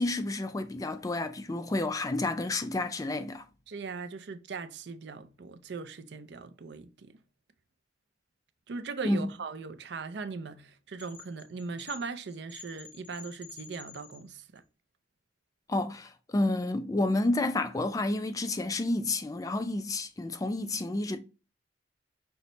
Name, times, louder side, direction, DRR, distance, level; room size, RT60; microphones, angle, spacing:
voice 1, 0.0-3.5 9.0-9.3 15.7-21.2, left 2 dB, 20° left, 0.3 m, -30 dB
voice 2, 3.7-7.2 8.7-14.6, right 4 dB, 65° right, 0.5 m, -39 dB
sound 1, 11.0-14.6, left 6 dB, 25° right, 1.1 m, -50 dB
5.7 x 2.1 x 3.9 m
head